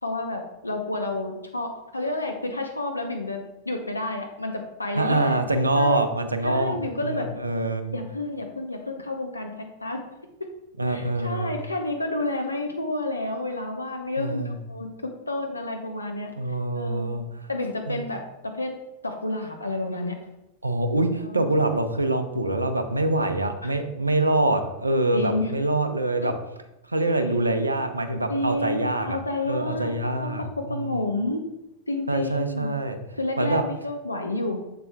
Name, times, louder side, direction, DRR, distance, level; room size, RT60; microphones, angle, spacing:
voice 1, 0.0-5.4 5.8-6.0 6.4-7.3 7.9-10.0 10.9-14.9 15.3-16.3 16.8-17.2 17.5-18.7 19.0-20.2 21.2-21.5 23.6-23.8 25.1-25.5 27.2-27.6 28.3-29.9 30.2-31.4 31.9-32.7 33.2-34.8, left 2 dB, 85° left, 3 dB, 0.6 m, -30 dB
voice 2, 5.0-8.0 10.8-11.5 14.2-14.6 16.4-17.2 17.9-18.0 20.6-26.3 26.9-29.2 29.5-31.0 32.1-33.0 33.4-33.6, right 2 dB, 80° right, 8 dB, 0.6 m, -25 dB
7.0 x 6.7 x 2.2 m, 0.91 s
figure-of-eight pair, 90°, 0 cm